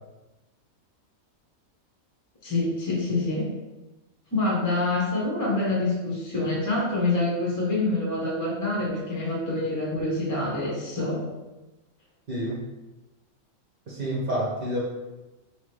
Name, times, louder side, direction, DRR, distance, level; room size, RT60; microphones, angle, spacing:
voice 1, 2.4-3.4 4.3-11.2, left 2 dB, 20° left, -5 dB, 0.6 m, -26 dB
voice 2, 12.3-12.6 13.9-14.8, equal, 45° right, -5 dB, 0.8 m, -28 dB
3.7 x 3.0 x 3.2 m, 1.1 s
omnidirectional pair, 1.4 m